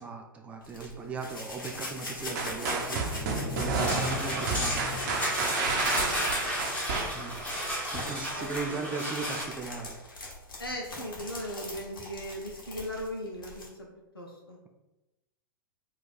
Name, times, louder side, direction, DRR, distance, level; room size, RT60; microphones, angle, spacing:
voice 1, 0.0-3.0 3.5-5.3 7.1-7.4 7.9-10.0, right 4 dB, 10° right, 3 dB, 0.3 m, -37 dB
sound 1, 0.6-13.7, left 1 dB, 70° left, 1.3 m, -41 dB
sound 2, 2.4-7.6, right 3 dB, 50° right, 0.7 m, -31 dB
sound 3, 3.8-9.4, equal, 10° left, 1.0 m, -33 dB
voice 2, 5.9-6.9 8.4-8.8 10.6-13.9 14.1-14.6, equal, 90° left, 0 dB, 0.6 m, -39 dB
3.2 x 2.3 x 4.0 m, 1.0 s
figure-of-eight pair, 100°, 12 cm